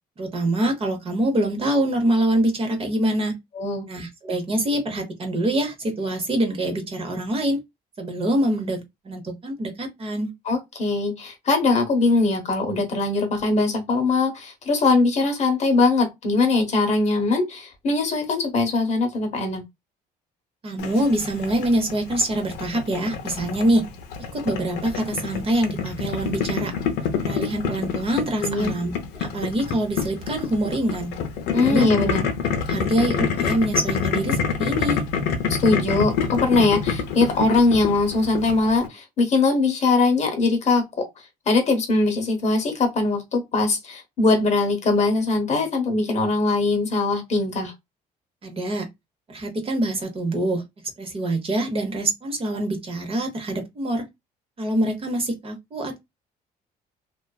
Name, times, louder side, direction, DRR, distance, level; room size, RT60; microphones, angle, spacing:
voice 1, 0.2-3.3 3.9-7.6 8.0-10.3 20.6-23.8 24.3-26.7 27.2-28.9 29.2-31.1 31.6-31.9 32.7-35.0 48.4-48.9 49.3-50.6 51.0-54.0 54.6-56.0, right 1 dB, 35° right, 0.8 m, -25 dB
voice 2, 10.5-19.6 28.4-28.7 31.5-32.3 35.5-41.1 41.5-47.7, left 3 dB, 40° left, 0.9 m, -21 dB
Boiling, 20.8-38.9, left 6 dB, 80° left, 0.5 m, -27 dB
2.4 x 2.2 x 2.3 m
cardioid pair, 110°, 17 cm